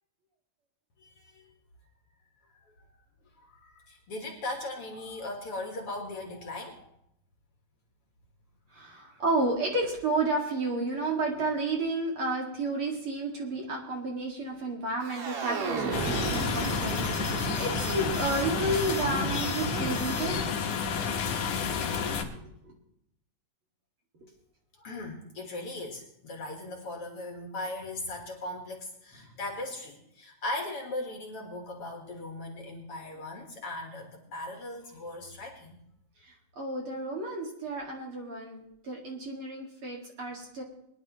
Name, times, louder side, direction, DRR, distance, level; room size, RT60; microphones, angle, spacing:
voice 1, 1.0-1.5 2.5-2.9 3.4-6.9 8.7-8.9 24.7-35.8, left 2 dB, 55° left, 2 dB, 2.3 m, -39 dB
voice 2, 8.7-20.4 22.6-22.7 36.2-40.6, right 2 dB, 45° right, -1 dB, 2.7 m, -31 dB
sound 1, 15.0-20.5, right 3 dB, 65° right, 2.8 m, -34 dB
sound 2, 15.9-22.2, left 6 dB, 80° left, 2.6 m, -31 dB
22.0 x 11.0 x 3.1 m, 0.78 s
omnidirectional pair, 3.5 m